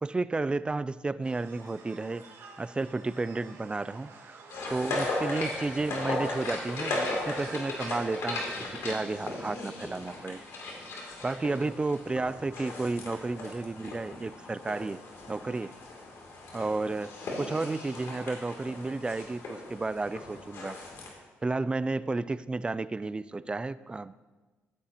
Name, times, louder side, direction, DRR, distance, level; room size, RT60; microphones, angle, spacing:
voice 1, 0.0-2.2 2.6-10.4 11.2-15.0 15.3-15.7 16.5-20.8 21.4-24.3, right 3 dB, 20° right, 16 dB, 0.4 m, -32 dB
sound 1, 1.2-8.0, right 4 dB, 65° right, 1.8 m, -50 dB
sound 2, 4.5-21.1, left 2 dB, 70° left, 2.9 m, -37 dB
14.5 x 9.0 x 2.9 m, 1.3 s
cardioid pair, 70°, 5 cm